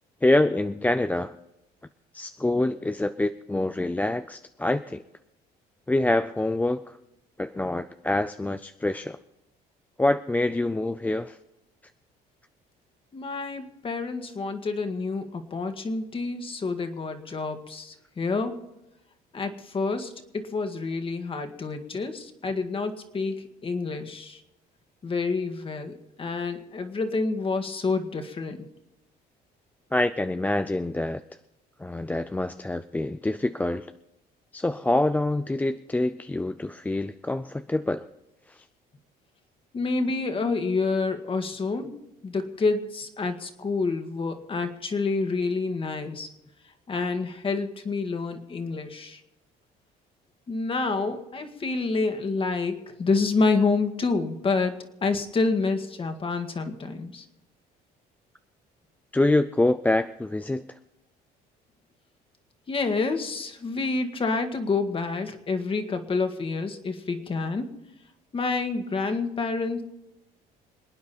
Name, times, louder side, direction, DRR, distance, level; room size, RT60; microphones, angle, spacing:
voice 1, 0.2-1.3 2.1-5.0 5.9-7.0 7.4-9.2 10.0-11.4 29.9-31.2 31.8-33.9 34.5-38.1 38.5-38.6 59.1-60.6, left 2 dB, 10° left, 10 dB, 0.4 m, -26 dB
voice 2, 13.1-18.6 19.3-24.4 25.0-28.7 39.7-41.9 42.2-46.3 46.9-49.2 50.5-57.2 62.7-67.7 68.3-69.8, left 4 dB, 30° left, 6 dB, 1.9 m, -28 dB
27.0 x 9.4 x 4.3 m, 0.92 s
cardioid pair, 110°, 17 cm